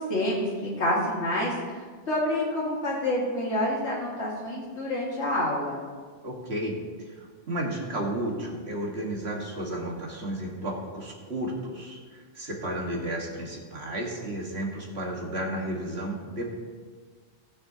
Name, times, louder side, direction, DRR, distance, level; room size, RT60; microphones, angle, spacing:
voice 1, 0.0-1.8 2.1-5.8, left 1 dB, 70° left, -5 dB, 2.2 m, -28 dB
voice 2, 6.2-16.5, right 1 dB, 60° right, -1 dB, 2.0 m, -33 dB
19.0 x 6.6 x 2.8 m, 1.5 s
omnidirectional pair, 1.2 m